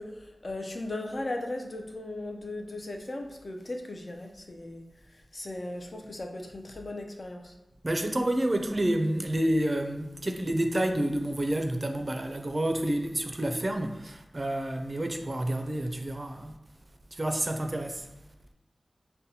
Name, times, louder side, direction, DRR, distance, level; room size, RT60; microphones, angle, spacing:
voice 1, 0.0-4.8 5.3-7.5, left 2 dB, 50° left, 0.5 m, -37 dB
voice 2, 7.8-16.6 17.1-18.1, right 1 dB, 35° right, 0.4 m, -29 dB
5.2 x 2.2 x 2.7 m
wide cardioid pair, 60°, 0 cm